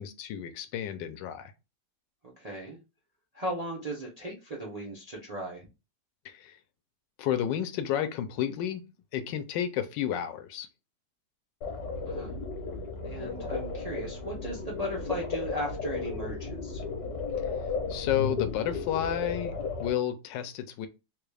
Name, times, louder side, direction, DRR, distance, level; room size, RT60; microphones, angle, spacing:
voice 1, 0.0-1.5 6.2-6.6 7.2-8.8 9.1-10.7 17.9-19.5 19.8-20.9, left 10 dB, 80° left, 1.2 m, -31 dB
voice 2, 2.4-2.8 3.3-5.6 12.0-12.4 13.0-16.8, right 1 dB, 80° right, 0.3 m, -37 dB
sound 1, 11.6-19.9, left 4 dB, 60° left, 1.3 m, -34 dB
3.8 x 2.3 x 3.3 m
omnidirectional pair, 1.9 m